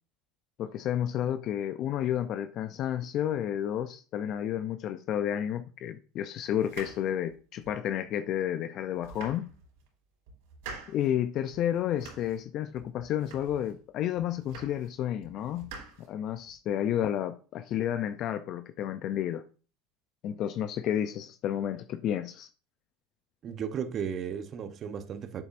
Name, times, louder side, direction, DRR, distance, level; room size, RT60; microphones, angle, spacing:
voice 1, 0.6-9.5 10.9-15.7 16.0-19.4 20.2-22.5, left 10 dB, 50° left, 0.5 m, -31 dB
sound 1, 6.6-7.9 8.4-8.5 8.9-9.9 10.3-11.1 11.5-12.4 12.8-13.8 14.2-14.9 15.2-16.5, right 4 dB, 75° right, 3.1 m, -47 dB
voice 2, 23.4-25.4, right 7 dB, 40° right, 0.9 m, -35 dB
8.2 x 7.0 x 2.6 m
supercardioid pair, 105°, 0 cm